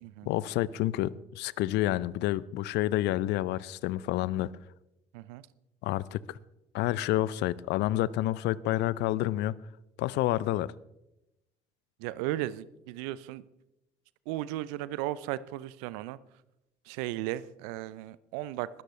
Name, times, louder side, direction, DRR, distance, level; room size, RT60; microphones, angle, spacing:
voice 1, 0.3-4.5 5.8-6.4 6.7-9.5 10.0-10.7, left 15 dB, 60° left, 21 dB, 0.5 m, -29 dB
voice 2, 5.1-5.5 12.0-13.4 14.3-16.2 16.9-18.8, right 15 dB, 70° right, 19 dB, 0.6 m, -35 dB
20.5 x 12.5 x 3.3 m, 0.90 s
hypercardioid pair, 50°, 20 cm